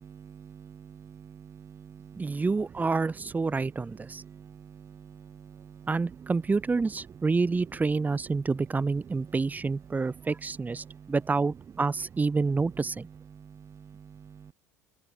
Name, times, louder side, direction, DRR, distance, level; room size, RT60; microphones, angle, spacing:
voice 1, 0.0-2.4 3.5-3.7 4.0-5.9 6.2-6.3 9.9-10.3 10.8-11.1 13.3-14.5, right 7 dB, 35° right, 3.9 m, -48 dB
voice 2, 2.2-4.2 5.9-13.1, right 4 dB, 20° right, 3.5 m, -28 dB
open air
hypercardioid pair, 70°, 8 cm